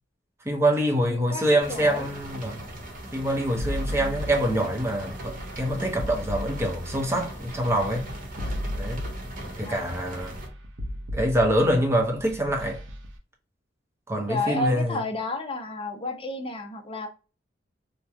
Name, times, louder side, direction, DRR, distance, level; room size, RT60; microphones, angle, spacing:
voice 1, 0.4-2.6 3.1-8.1 8.8-9.0 9.6-10.3 11.1-12.8 14.1-15.0, right 1 dB, 15° right, 0.6 m, -25 dB
voice 2, 1.1-2.1 4.0-4.2 9.6-9.9 14.3-17.1, left 2 dB, 30° left, 0.6 m, -31 dB
sound 1, 1.6-10.5, right 1 dB, 45° right, 0.9 m, -40 dB
sound 2, 3.6-13.1, equal, 75° right, 0.6 m, -35 dB
2.9 x 2.1 x 2.2 m
head